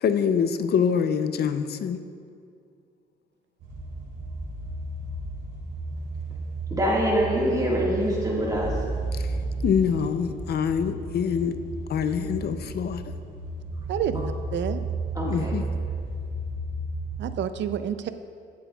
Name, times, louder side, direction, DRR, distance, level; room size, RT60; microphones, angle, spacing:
voice 1, 0.0-2.0 9.1-9.4 9.6-11.6 11.9-13.0 15.3-15.7, left 7 dB, 55° left, 10 dB, 0.6 m, -25 dB
sound 1, 3.6-17.3, right 2 dB, 90° right, 2.6 m, -33 dB
voice 2, 6.7-8.7 15.1-15.5, equal, 20° right, -5 dB, 1.8 m, -24 dB
voice 3, 13.9-14.8 17.2-18.1, right 9 dB, 65° right, 11 dB, 0.5 m, -29 dB
17.5 x 7.6 x 2.4 m, 2.3 s
cardioid pair, 90°, 20 cm